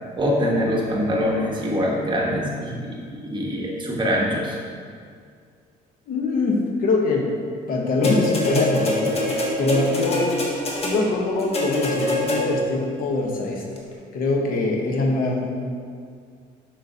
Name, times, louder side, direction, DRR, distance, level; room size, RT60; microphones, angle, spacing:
voice 1, 0.1-2.8 3.2-4.6, equal, 30° right, -3 dB, 1.1 m, -23 dB
voice 2, 6.1-7.3 7.7-9.2 9.6-10.3 10.8-13.6 14.1-15.4, left 2 dB, 60° left, 0 dB, 1.0 m, -23 dB
sound 1, 8.0-12.8 13.8-13.9, left 1 dB, 35° left, 1.1 m, -25 dB
6.5 x 5.7 x 2.7 m, 2.1 s
cardioid pair, 110°, 17 cm